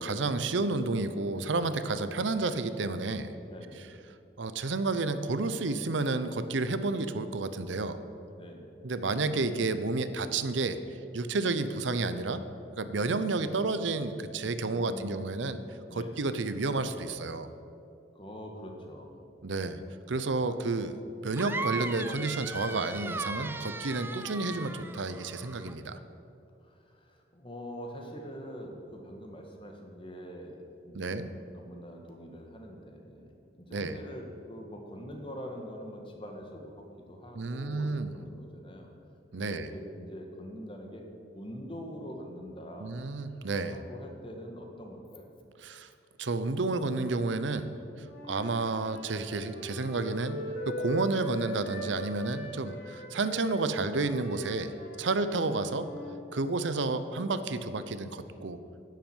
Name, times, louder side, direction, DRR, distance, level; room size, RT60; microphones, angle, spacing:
voice 1, 0.0-3.3 4.4-8.0 8.8-10.8 11.1-12.4 12.8-15.6 15.9-17.5 19.4-19.8 20.1-21.0 21.2-26.0 30.9-31.3 33.7-34.0 37.4-38.1 39.3-39.7 42.8-43.8 45.6-45.9 46.2-47.8 48.3-55.9 56.3-58.6, right 3 dB, 80° right, 12 dB, 0.7 m, -31 dB
voice 2, 3.5-3.9 8.3-8.7 14.6-15.2 15.8-16.2 18.1-19.3 26.6-31.2 31.5-38.9 39.4-41.0 41.3-42.9 43.7-45.3 55.4-55.6, equal, 30° left, 2 dB, 1.6 m, -44 dB
sound 1, 21.3-25.7, right 2 dB, 10° right, 0.4 m, -37 dB
Wind instrument woodwind instrument, 48.0-56.1, left 1 dB, 75° left, 3.7 m, -41 dB
11.0 x 7.6 x 9.0 m, 2.6 s
head